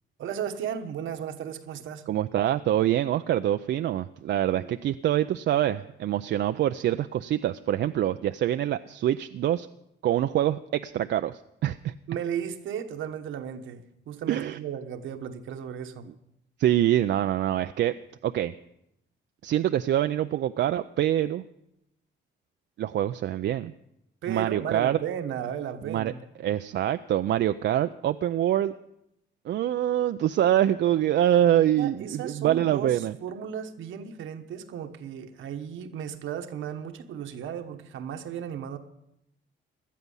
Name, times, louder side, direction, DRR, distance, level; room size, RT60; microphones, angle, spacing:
voice 1, 0.2-2.1 4.5-4.7 12.1-16.1 24.2-26.2 31.8-38.8, right 8 dB, 80° right, 7 dB, 1.2 m, -35 dB
voice 2, 2.1-9.7 10.0-11.9 14.3-14.6 16.6-18.5 19.4-21.4 22.8-23.7 24.3-25.0 25.9-26.1 26.4-28.7 29.5-33.1, right 12 dB, 60° right, 9 dB, 0.5 m, -25 dB
17.5 x 12.0 x 5.5 m, 0.81 s
cardioid pair, 90°, 20 cm